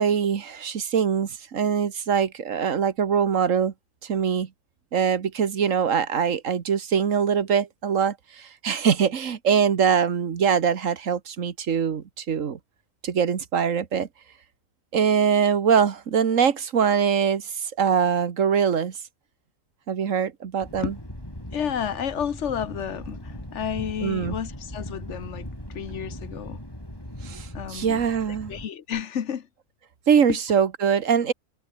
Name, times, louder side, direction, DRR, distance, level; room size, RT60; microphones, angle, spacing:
voice 1, 0.0-3.7 4.0-4.5 4.9-12.6 13.0-14.1 14.9-18.9 19.9-20.9 24.0-24.4 27.2-28.5 30.1-31.3, right 7 dB, 80° right, 1.7 m, -23 dB
Thunder, 20.6-28.7, left 1 dB, 20° left, 5.8 m, -39 dB
voice 2, 21.5-25.5 25.7-26.6 27.5-29.5 30.3-30.4, left 8 dB, 65° left, 1.3 m, -31 dB
omnidirectional pair, 1.3 m